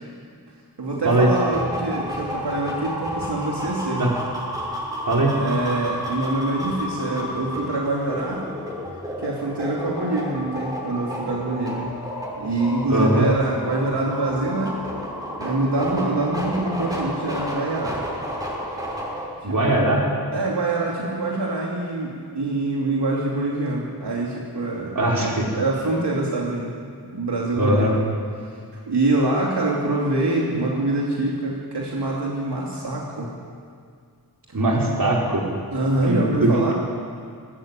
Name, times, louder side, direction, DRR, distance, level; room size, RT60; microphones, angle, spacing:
voice 1, 0.8-4.1 5.3-8.5 9.2-11.9 12.4-14.8 15.4-18.0 19.5-19.8 20.3-26.7 27.0-28.0 28.7-33.3 35.7-36.7, right 2 dB, 90° right, -3 dB, 2.9 m, -25 dB
sound 1, 1.2-19.3, equal, 10° right, 5.9 m, -31 dB
voice 2, 12.9-13.3 19.4-20.0 24.9-25.5 27.6-27.9 34.5-35.4 36.1-36.7, right 1 dB, 55° right, -2 dB, 4.8 m, -20 dB
19.5 x 18.0 x 9.1 m, 2.2 s
wide cardioid pair, 90°, 40 cm